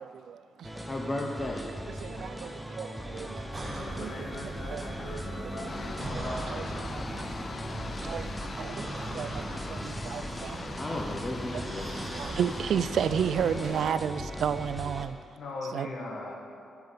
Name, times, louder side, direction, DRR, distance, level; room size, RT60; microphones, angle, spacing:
voice 1, 0.0-0.7 2.0-4.9 5.4-5.7 6.1-11.0 11.5-11.6 12.0-15.2 15.7-15.9, right 8 dB, 70° right, 13 dB, 0.3 m, -33 dB
sound 1, 0.6-15.1, equal, ahead, 0.7 m, -40 dB
voice 2, 0.9-1.7 10.8-12.3, left 1 dB, 25° left, -2 dB, 1.0 m, -35 dB
sound 2, 3.5-13.8, right 2 dB, 30° right, 1.1 m, -40 dB
voice 3, 3.6-6.4 15.3-16.4, left 2 dB, 65° left, -1 dB, 1.7 m, -39 dB
sound 3, 5.7-13.9, left 4 dB, 40° left, 0.4 m, -42 dB
10.5 x 5.5 x 5.6 m, 2.5 s
cardioid pair, 100°, 0 cm